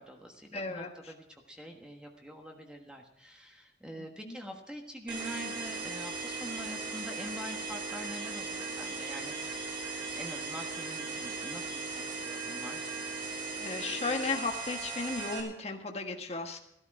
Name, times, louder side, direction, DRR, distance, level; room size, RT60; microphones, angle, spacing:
voice 1, 0.0-12.9, equal, 5° right, 2 dB, 1.4 m, -45 dB
voice 2, 0.5-0.9 4.2-4.4 13.6-16.6, left 3 dB, 35° left, 4 dB, 1.5 m, -35 dB
sound 1, 5.1-15.4, right 3 dB, 25° right, 3.1 m, -38 dB
14.0 x 13.0 x 4.8 m, 0.82 s
head